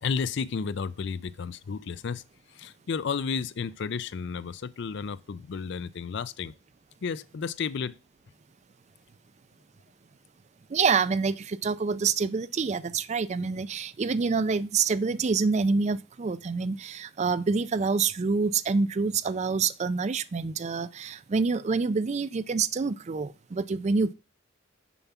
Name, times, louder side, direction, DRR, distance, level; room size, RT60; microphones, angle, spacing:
voice 1, 0.0-2.2 2.5-6.5 7.0-8.0, left 5 dB, 60° left, 0.4 m, -32 dB
voice 2, 10.7-24.1, right 4 dB, 35° right, 0.4 m, -27 dB
7.0 x 5.5 x 5.9 m
head